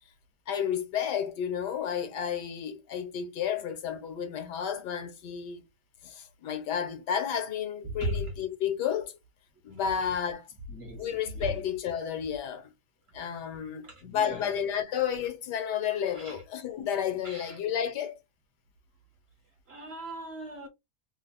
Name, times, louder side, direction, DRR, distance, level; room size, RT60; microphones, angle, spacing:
voice 1, 0.5-5.6 6.0-9.2 9.6-10.5 11.0-12.7 13.1-18.2, left 8 dB, 85° left, 1.4 m, -32 dB
voice 2, 10.7-11.6 13.8-14.5 16.2-16.4 17.2-17.6 19.7-20.7, right 1 dB, 50° right, 0.8 m, -37 dB
3.2 x 2.0 x 3.9 m
omnidirectional pair, 1.8 m